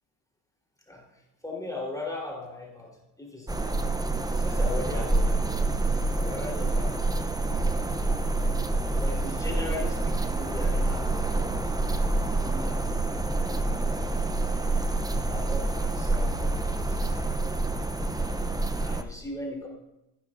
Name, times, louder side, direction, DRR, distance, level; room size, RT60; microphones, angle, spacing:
voice 1, 1.4-2.9 3.2-4.0 4.4-5.6 6.1-7.0 7.3-7.8 9.0-13.1 13.7-14.5 15.1-17.2 18.8-19.7, left 2 dB, 5° left, -2 dB, 3.9 m, -39 dB
sound 1, 3.5-19.0, right 2 dB, 10° right, 0.7 m, -27 dB
14.5 x 11.0 x 2.6 m, 0.93 s
supercardioid pair, 80°, 47 cm